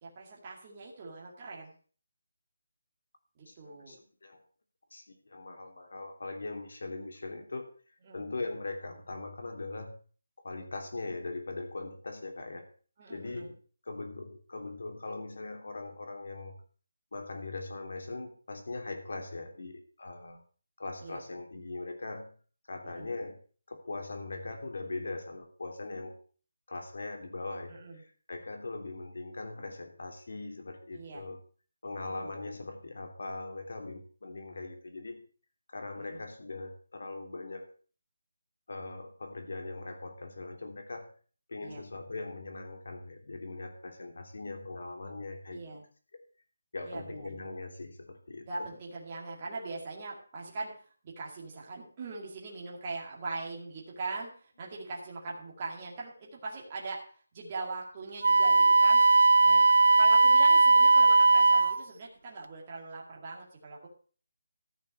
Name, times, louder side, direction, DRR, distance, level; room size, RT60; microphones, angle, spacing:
voice 1, 0.0-1.7 3.4-4.0 8.0-8.2 13.0-13.5 21.0-21.2 22.8-23.1 27.7-28.0 30.9-31.2 32.0-32.3 36.0-36.2 41.6-41.8 45.5-45.8 46.8-47.3 48.5-57.0 57.3-59.0 59.4-59.7 59.9-63.9, right 3 dB, 20° right, -3 dB, 2.3 m, -41 dB
voice 2, 3.5-4.4 4.9-7.7 8.1-9.9 10.4-12.7 13.1-13.6 13.8-16.6 17.1-20.4 20.8-22.3 22.7-23.4 23.7-26.2 26.7-31.4 31.8-35.2 35.7-37.7 38.7-41.1 41.5-45.6 46.7-48.7, left 3 dB, 55° left, 4 dB, 3.1 m, -40 dB
Wind instrument woodwind instrument, 58.2-61.8, right 3 dB, 50° right, 0.6 m, -20 dB
14.5 x 6.3 x 6.6 m, 0.42 s
hypercardioid pair, 180°, 0 cm